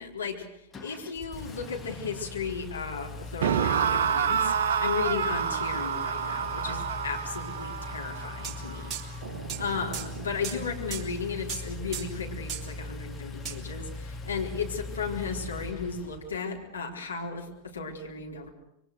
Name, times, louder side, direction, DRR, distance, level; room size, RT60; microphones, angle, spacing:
voice 1, 0.0-4.5 4.8-8.9 9.6-18.5, left 5 dB, 75° left, 0 dB, 4.1 m, -35 dB
Engine, 0.7-16.4, left 3 dB, 15° left, 1.8 m, -41 dB
sound 1, 3.4-10.5, right 7 dB, 60° right, 0.9 m, -29 dB
sound 2, 8.4-8.6 8.9-9.1 9.5-9.6 9.9-10.1 10.4-10.6 10.9-11.0 11.5-11.6 11.9-12.1 12.5-12.7 13.4-13.6, right 8 dB, 30° right, 3.1 m, -36 dB
27.0 x 23.5 x 6.5 m, 0.80 s
figure-of-eight pair, 90°, 0 cm